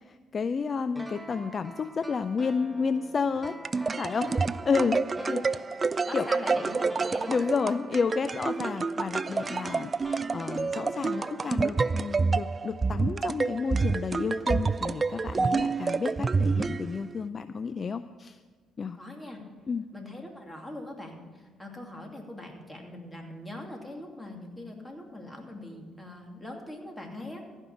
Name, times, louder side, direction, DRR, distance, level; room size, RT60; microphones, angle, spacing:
voice 1, 0.0-3.6 4.0-4.3 4.6-5.4 5.9-6.3 7.3-18.4 18.8-19.0 19.7-19.9, left 5 dB, 40° left, 12 dB, 0.4 m, -31 dB
sound 1, 0.9-12.6 12.9-13.0, right 1 dB, 10° right, 1.2 m, -46 dB
sound 2, 3.4-17.2, right 4 dB, 35° right, 0.3 m, -28 dB
voice 2, 6.1-7.5 19.0-19.4 19.9-21.2 21.6-27.4, left 1 dB, 15° left, 1 dB, 2.6 m, -41 dB
15.0 x 5.5 x 8.3 m, 1.4 s
supercardioid pair, 70°, 0 cm